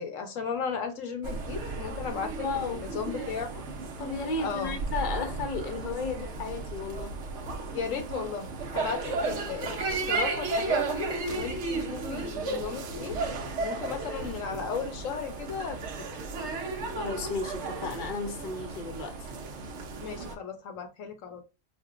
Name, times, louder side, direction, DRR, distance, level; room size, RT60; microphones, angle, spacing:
voice 1, 0.0-2.5 2.8-3.6 4.4-4.8 7.7-13.2 13.6-16.1 20.0-21.4, left 6 dB, 75° left, 1.1 m, -35 dB
sound 1, 1.2-20.4, right 3 dB, 65° right, 0.9 m, -34 dB
voice 2, 2.4-2.8 4.0-7.2 16.9-19.3, left 4 dB, 45° left, 0.8 m, -34 dB
4.4 x 2.4 x 2.4 m
omnidirectional pair, 1.4 m